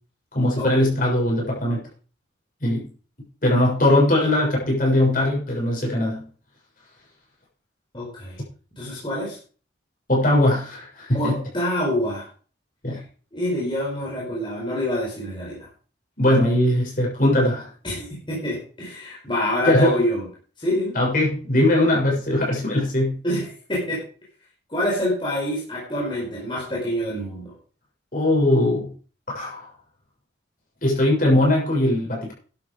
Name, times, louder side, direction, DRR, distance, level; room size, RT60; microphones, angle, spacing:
voice 1, 0.3-1.8 2.6-2.9 3.4-6.2 10.1-11.4 12.8-13.0 16.2-17.7 19.6-20.0 21.0-23.2 28.1-28.9 29.3-29.6 30.8-32.3, left 1 dB, 45° left, -3 dB, 7.1 m, -20 dB
voice 2, 7.9-8.4 8.8-9.4 11.1-12.3 12.9-13.0 13.3-15.7 17.8-20.3 20.6-21.0 23.2-24.0 24.7-27.5, left 1 dB, 25° left, -5 dB, 4.9 m, -26 dB
12.0 x 10.0 x 5.0 m, 0.40 s
head